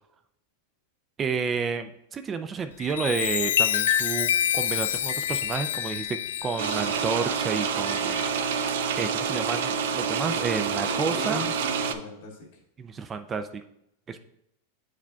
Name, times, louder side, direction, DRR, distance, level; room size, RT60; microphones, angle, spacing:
voice 1, 1.2-8.2 9.0-11.4 12.8-13.6 14.1-14.2, right 5 dB, 20° right, 8 dB, 0.4 m, -31 dB
Chime, 2.7-8.7 9.3-9.5, left 10 dB, 85° left, 0.3 m, -28 dB
sound 1, 6.6-11.9, right 6 dB, 75° right, 0.5 m, -27 dB
voice 2, 10.9-12.6 14.1-14.2, left 2 dB, 65° left, -1 dB, 1.9 m, -38 dB
8.6 x 4.9 x 2.3 m, 0.76 s
supercardioid pair, 145°, 0 cm